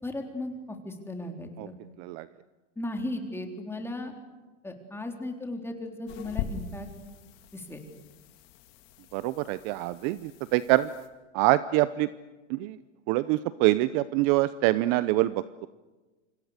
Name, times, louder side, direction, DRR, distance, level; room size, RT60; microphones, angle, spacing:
voice 1, 0.0-1.8 2.8-4.1 4.6-6.9 7.5-7.8, left 1 dB, 5° left, 3 dB, 3.8 m, -36 dB
sound 1, 6.1-11.1, left 9 dB, 50° left, 3.1 m, -41 dB
voice 2, 9.1-10.9 11.3-12.1 12.5-12.8 13.1-15.7, right 17 dB, 40° right, 15 dB, 0.8 m, -25 dB
29.0 x 26.0 x 6.7 m, 1.2 s
hypercardioid pair, 130°, 37 cm